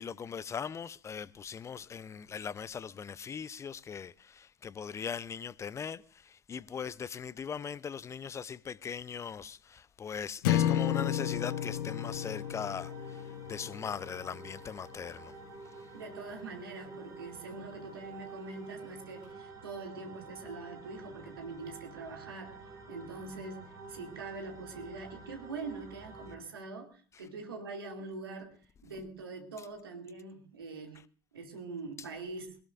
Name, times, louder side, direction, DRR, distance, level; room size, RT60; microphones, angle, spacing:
voice 1, 0.0-15.3, left 7 dB, 25° left, 0.6 m, -40 dB
sound 1, 10.4-14.8, left 11 dB, 60° left, 0.9 m, -32 dB
sound 2, 11.2-26.4, right 4 dB, 25° right, 7.7 m, -49 dB
voice 2, 15.9-22.6 22.9-28.6 28.8-31.0 31.3-32.6, right 3 dB, 75° right, 2.5 m, -43 dB
22.0 x 18.5 x 2.6 m
figure-of-eight pair, 70°, 12 cm